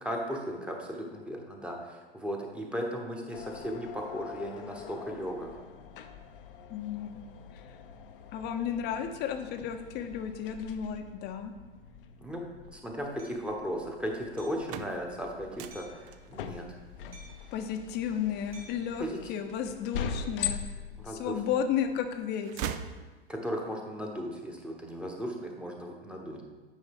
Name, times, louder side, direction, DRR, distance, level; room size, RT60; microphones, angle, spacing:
voice 1, 0.0-5.5 12.2-12.4 12.7-16.7 19.0-19.3 21.0-21.3 23.3-26.4, equal, 5° right, 1 dB, 1.1 m, -36 dB
sound 1, 3.3-22.2, left 7 dB, 60° left, 0.7 m, -43 dB
voice 2, 6.7-7.2 8.3-11.5 17.5-20.6 21.1-22.7, left 8 dB, 35° left, 7 dB, 0.8 m, -33 dB
Hammer, 13.2-13.4 14.4-14.7 15.7-16.1 17.1-17.5 18.5-18.9, right 2 dB, 75° right, 1.6 m, -52 dB
sound 2, 14.5-20.3 20.9-21.7 22.0-23.6, right 10 dB, 25° right, 0.3 m, -43 dB
9.1 x 5.5 x 3.7 m, 1.3 s
hypercardioid pair, 100°, 31 cm